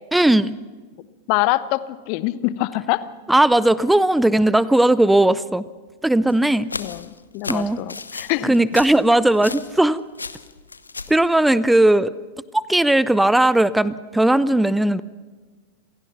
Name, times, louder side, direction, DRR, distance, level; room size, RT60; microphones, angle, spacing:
voice 1, 0.1-0.5 3.3-5.6 6.0-6.7 7.5-7.8 8.4-10.0 11.1-12.1 12.5-15.0, right 1 dB, 5° right, 19 dB, 0.5 m, -17 dB
voice 2, 1.3-3.0 6.8-8.6, left 17 dB, 45° left, 17 dB, 0.8 m, -24 dB
sound 1, 6.3-9.9 10.1-11.2, left 4 dB, 80° left, 0.9 m, -34 dB
27.0 x 17.0 x 5.8 m, 1.4 s
figure-of-eight pair, 90°, 0 cm